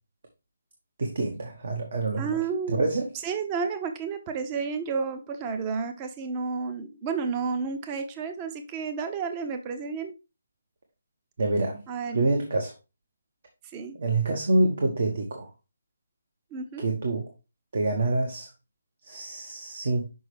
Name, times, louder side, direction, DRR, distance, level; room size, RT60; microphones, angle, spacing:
voice 1, 1.0-2.4 2.7-3.1 11.4-11.8 12.1-12.7 14.0-15.5 16.8-17.3 17.7-18.5 19.0-20.0, right 2 dB, 60° right, 1.3 m, -26 dB
voice 2, 2.2-2.8 3.2-10.1 11.9-12.2 13.7-13.9 16.5-16.9, right 5 dB, 25° right, 0.7 m, -31 dB
6.2 x 5.1 x 3.3 m
figure-of-eight pair, 155°, 0 cm